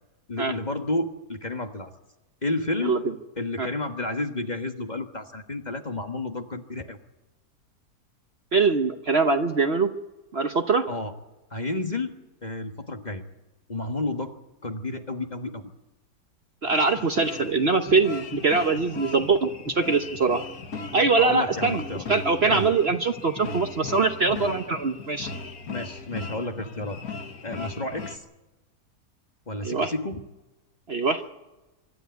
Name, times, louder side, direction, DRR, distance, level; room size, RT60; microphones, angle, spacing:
voice 1, 0.3-1.9 2.4-3.0 3.4-7.0 10.9-11.1 11.5-12.1 12.4-13.2 13.7-14.3 14.6-15.7 21.2-22.0 22.5-22.7 25.7-27.0 27.4-28.2 29.5-30.2, left 2 dB, 30° left, 6 dB, 1.4 m, -31 dB
voice 2, 8.5-9.9 10.3-10.9 16.6-20.4 20.9-21.8 22.1-25.3 27.6-27.7 29.6-29.9 30.9-31.2, right 4 dB, 45° right, 7 dB, 1.1 m, -23 dB
sound 1, 16.6-28.2, left 3 dB, 65° left, 1.9 m, -37 dB
25.0 x 13.0 x 9.3 m, 1.1 s
omnidirectional pair, 1.7 m